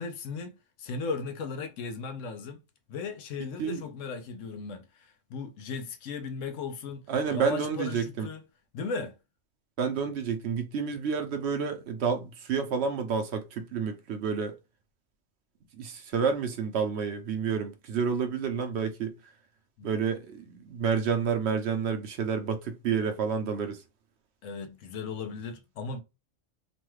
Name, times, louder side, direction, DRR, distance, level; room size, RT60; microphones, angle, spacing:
voice 1, 0.0-2.6 2.9-8.4 8.7-9.1 19.8-19.9 24.4-26.0, left 4 dB, 80° left, 1.0 m, -37 dB
voice 2, 7.1-8.3 9.8-14.6 15.7-19.1 19.8-23.8, right 6 dB, 65° right, 0.8 m, -29 dB
3.0 x 2.2 x 3.1 m
omnidirectional pair, 1.3 m